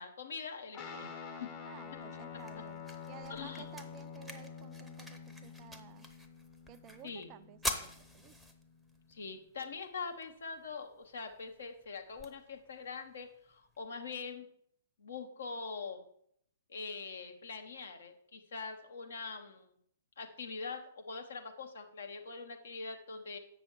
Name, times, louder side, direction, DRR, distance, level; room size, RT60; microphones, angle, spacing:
voice 1, 0.0-1.5 3.3-3.7 7.0-7.3 9.1-14.5 15.0-16.0 16.7-19.7 20.2-23.4, left 4 dB, 65° left, 5 dB, 1.0 m, -43 dB
Guitar, 0.7-9.5, left 6 dB, 30° left, 0.9 m, -48 dB
voice 2, 1.6-6.1 6.7-8.4, right 12 dB, 30° right, 13 dB, 0.4 m, -54 dB
sound 1, 1.9-13.9, equal, ahead, 0.8 m, -47 dB
7.9 x 6.1 x 4.7 m, 0.69 s
figure-of-eight pair, 115°, 0 cm